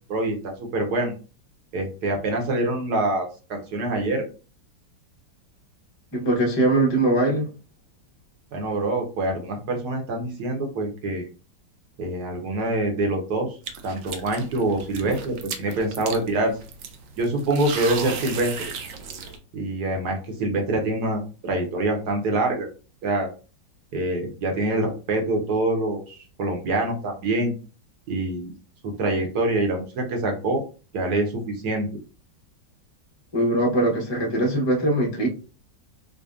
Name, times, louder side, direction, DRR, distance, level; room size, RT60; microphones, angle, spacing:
voice 1, 0.1-1.1 1.7-4.2 8.5-11.3 12.0-13.5 13.8-16.5 17.2-18.5 19.5-22.7 23.0-23.3 23.9-27.5 28.1-28.5 28.8-30.6 30.9-31.9, right 2 dB, 65° right, 2 dB, 1.3 m, -25 dB
voice 2, 6.1-7.5 33.3-35.3, right 1 dB, 40° left, -2 dB, 0.3 m, -21 dB
sound 1, 13.6-19.4, right 6 dB, 85° right, 0.7 m, -36 dB
5.0 x 2.2 x 2.4 m, 0.35 s
omnidirectional pair, 2.0 m